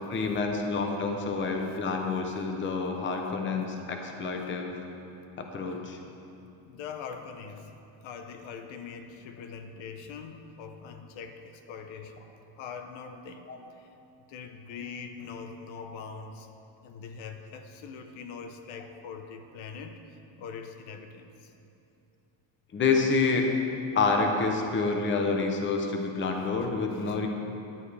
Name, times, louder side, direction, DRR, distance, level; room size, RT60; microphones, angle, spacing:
voice 1, 0.1-4.7 5.4-6.0 13.5-13.6 22.7-23.5 23.9-27.3, left 4 dB, 25° left, 3 dB, 0.8 m, -28 dB
voice 2, 6.6-7.7 8.0-13.5 13.7-13.9 14.3-16.5 16.8-21.5 26.9-27.2, left 5 dB, 85° left, 6 dB, 1.0 m, -43 dB
14.0 x 11.0 x 3.4 m, 2.8 s
cardioid pair, 180°, 45 cm